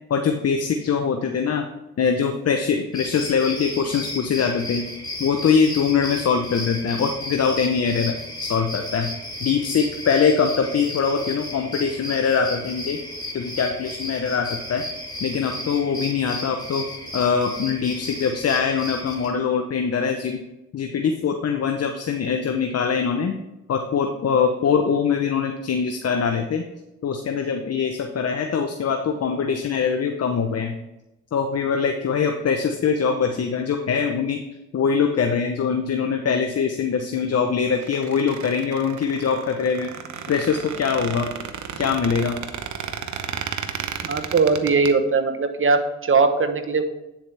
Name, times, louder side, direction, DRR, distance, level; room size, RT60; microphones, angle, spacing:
voice 1, 0.1-1.6 2.0-4.9 5.2-8.1 8.4-9.1 9.4-13.0 13.3-14.8 15.2-16.8 17.1-20.4 20.7-23.4 23.7-26.7 27.0-30.7 31.3-34.4 34.7-39.9 40.3-41.3 41.8-42.4, left 6 dB, 50° left, 5 dB, 0.9 m, -23 dB
sound 1, 2.9-19.3, left 1 dB, 15° left, 3.4 m, -34 dB
Squeak, 37.7-44.9, right 7 dB, 65° right, 0.9 m, -33 dB
voice 2, 44.0-46.8, right 4 dB, 40° right, 8 dB, 1.2 m, -20 dB
9.0 x 7.4 x 3.4 m, 0.96 s
supercardioid pair, 55°, 31 cm